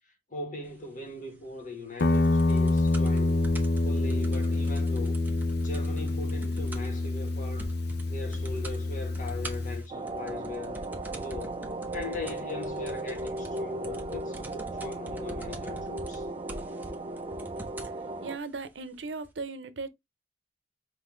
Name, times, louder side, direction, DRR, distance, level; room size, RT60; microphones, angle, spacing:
voice 1, 0.3-3.4 3.8-5.3 5.6-7.7 8.1-10.8 11.2-11.7 11.9-16.3, left 2 dB, 45° left, 1.3 m, -40 dB
Guitar, 2.0-9.8, left 2 dB, 60° left, 0.5 m, -27 dB
sound 1, 2.0-7.0 7.3-7.4 7.6-8.1 8.3-8.8 9.1-18.0 18.8-18.9, right 1 dB, 10° right, 0.8 m, -44 dB
sound 2, 9.9-18.4, right 2 dB, 30° right, 0.4 m, -36 dB
voice 2, 18.2-19.9, right 4 dB, 75° right, 0.7 m, -37 dB
5.8 x 2.6 x 3.1 m
head